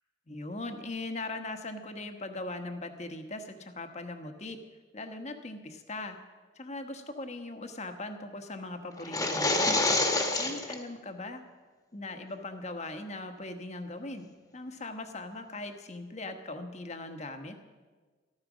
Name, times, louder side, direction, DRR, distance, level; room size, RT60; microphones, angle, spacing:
voice 1, 0.3-4.6 4.9-6.2 6.5-9.8 10.4-11.4 11.9-17.6, left 2 dB, 35° left, 7 dB, 1.3 m, -40 dB
sound 1, 9.0-10.8, left 2 dB, 20° left, 1.5 m, -27 dB
14.0 x 14.0 x 6.2 m, 1.4 s
head